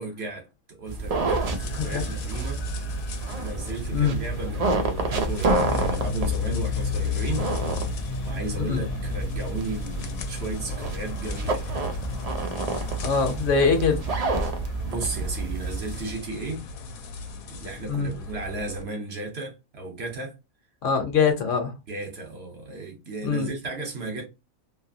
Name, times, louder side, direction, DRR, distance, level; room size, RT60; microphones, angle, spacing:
voice 1, 0.0-2.6 3.4-7.5 8.2-11.7 12.1-12.2 14.8-16.7 17.5-20.4 21.9-24.3, right 3 dB, 50° right, 1.1 m, -35 dB
sound 1, 0.9-16.1, right 3 dB, 75° right, 0.3 m, -29 dB
sound 2, 1.2-18.8, left 7 dB, 85° left, 1.1 m, -34 dB
voice 2, 13.0-14.0 17.9-18.1 20.8-21.7 23.2-23.5, left 5 dB, 65° left, 1.1 m, -23 dB
2.7 x 2.6 x 2.6 m
omnidirectional pair, 1.4 m